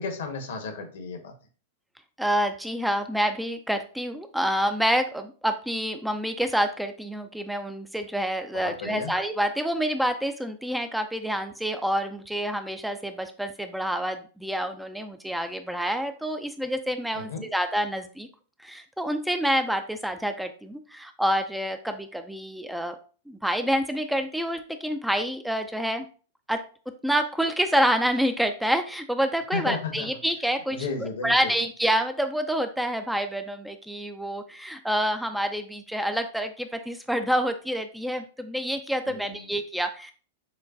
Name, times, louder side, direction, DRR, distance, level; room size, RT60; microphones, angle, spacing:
voice 1, 0.0-1.3 8.5-9.1 17.1-17.4 29.5-30.1 30.7-31.5 39.1-39.5, left 4 dB, 75° left, 5 dB, 1.1 m, -33 dB
voice 2, 2.2-18.3 18.6-23.0 23.3-26.1 26.5-26.6 27.0-40.1, equal, ahead, 7 dB, 0.4 m, -27 dB
6.3 x 2.2 x 2.5 m, 0.38 s
hypercardioid pair, 110°, 0 cm